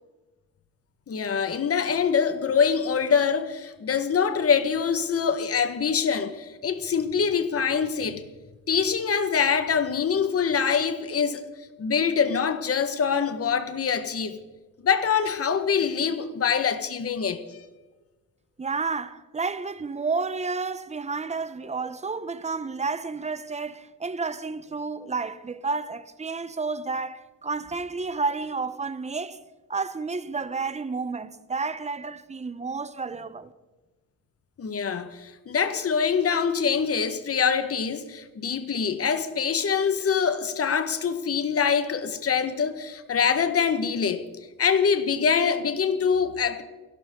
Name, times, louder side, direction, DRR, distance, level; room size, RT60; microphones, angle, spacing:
voice 1, 1.1-8.2 8.7-11.4 11.8-14.4 14.8-17.4 34.6-44.2 44.6-46.6, left 6 dB, 45° left, 1.6 m, -24 dB
voice 2, 18.6-29.4 29.7-33.5, right 4 dB, 20° right, 1.0 m, -31 dB
29.0 x 12.5 x 3.9 m
cardioid pair, 110°, 34 cm